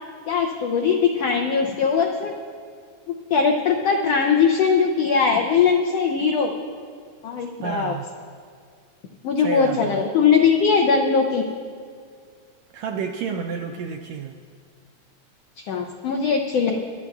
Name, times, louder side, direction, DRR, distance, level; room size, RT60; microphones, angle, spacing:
voice 1, 0.3-2.3 3.3-6.5 7.2-8.0 9.2-11.4 15.7-16.8, left 6 dB, 80° left, 2 dB, 1.4 m, -20 dB
voice 2, 7.6-8.1 9.4-10.0 12.7-14.4, right 6 dB, 80° right, 3 dB, 1.6 m, -30 dB
24.0 x 11.5 x 2.3 m, 2.1 s
omnidirectional pair, 3.6 m